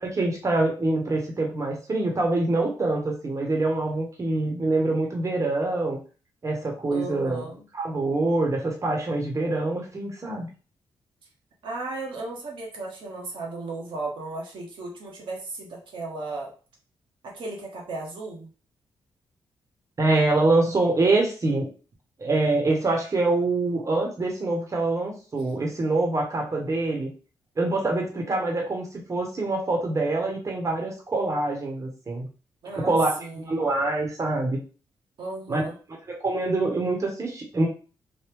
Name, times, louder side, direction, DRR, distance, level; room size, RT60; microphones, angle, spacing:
voice 1, 0.0-6.0 6.4-7.4 7.7-10.5 20.0-21.7 22.2-27.1 27.6-32.2 32.8-34.6 35.5-35.6 36.1-37.7, right 2 dB, 35° right, 0 dB, 1.0 m, -25 dB
voice 2, 6.9-7.6 11.6-16.5 17.2-18.5 32.6-33.5 35.2-35.7, right 2 dB, 75° right, -1 dB, 1.0 m, -35 dB
3.1 x 2.1 x 3.4 m, 0.36 s
cardioid pair, 75°, 9 cm